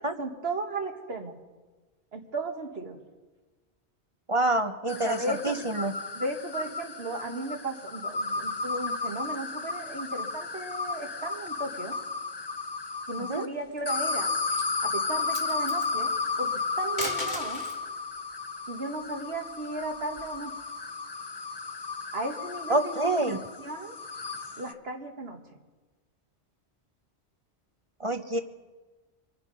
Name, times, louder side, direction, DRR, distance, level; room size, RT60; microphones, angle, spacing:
voice 1, 0.2-1.4 2.1-3.0 5.0-5.6 6.1-12.0 13.1-14.3 14.8-16.1 16.4-16.5 16.8-17.6 18.7-20.5 22.1-24.0 24.6-25.4 28.3-28.4, right 2 dB, 65° right, 4 dB, 1.9 m, -35 dB
voice 2, 4.3-5.2 5.4-5.9 13.3-13.4 22.7-23.4 28.0-28.4, right 2 dB, 35° right, 8 dB, 0.6 m, -26 dB
sound 1, 4.9-13.5 13.9-24.7, left 4 dB, 30° left, 0.6 m, -33 dB
sound 2, 13.6-14.1 14.5-14.7 15.1-15.9 16.8-17.8 19.3-20.5, left 1 dB, 70° left, 2.9 m, -38 dB
25.0 x 9.6 x 5.5 m, 1.3 s
omnidirectional pair, 1.1 m